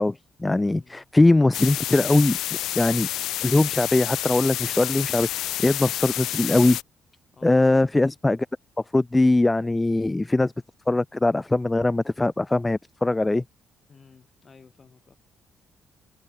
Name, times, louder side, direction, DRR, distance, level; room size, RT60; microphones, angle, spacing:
voice 1, 0.0-2.4 2.8-3.1 3.4-6.8 7.4-8.5 8.9-10.5 10.9-13.4, left 2 dB, 15° left, 0.4 m, -21 dB
voice 2, 0.7-1.1 7.3-7.9 13.9-15.1, left 5 dB, 35° left, 6.6 m, -53 dB
sound 1, 1.5-6.8, left 14 dB, 85° left, 0.6 m, -29 dB
cardioid pair, 90°, 0 cm